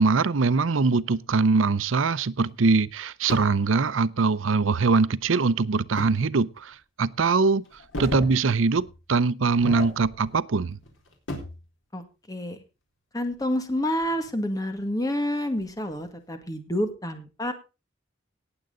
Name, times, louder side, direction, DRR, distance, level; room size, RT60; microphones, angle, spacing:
voice 1, 0.0-7.6 8.0-10.8, right 4 dB, 90° right, 0.6 m, -22 dB
sound 1, 3.3-3.6 6.0-6.2 6.7-6.8 7.7-8.4 8.7-8.9 9.5-10.4 10.7-11.6 13.2-14.3 14.8-14.9 15.6-16.0, left 1 dB, 85° left, 4.0 m, -35 dB
voice 2, 12.3-12.6 13.1-17.5, left 1 dB, 20° left, 1.8 m, -28 dB
18.5 x 7.8 x 3.8 m
head